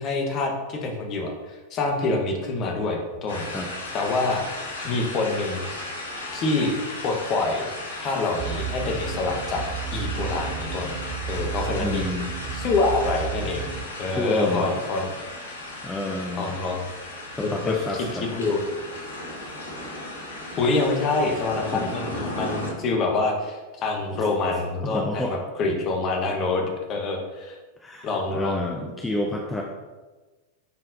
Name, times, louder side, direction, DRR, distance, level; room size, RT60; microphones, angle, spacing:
voice 1, 0.0-3.5 3.9-4.4 4.8-5.7 6.3-6.7 7.0-7.7 8.0-9.6 9.9-10.9 11.3-12.1 12.5-13.6 14.0-15.1 16.4-16.8 17.4-18.1 18.3-18.6 20.5-27.6 28.0-28.6, left 3 dB, 35° left, 1 dB, 1.2 m, -26 dB
sound 1, 3.3-22.7, left 2 dB, 70° left, 1.3 m, -35 dB
sound 2, 8.4-13.9, right 9 dB, 40° right, 0.6 m, -33 dB
voice 2, 11.8-12.3 14.1-14.7 15.8-16.6 17.3-18.3 21.7-21.9 24.8-25.4 27.8-29.6, left 1 dB, 10° left, 0 dB, 0.6 m, -30 dB
9.5 x 4.4 x 2.7 m, 1.2 s
figure-of-eight pair, 90°, 0 cm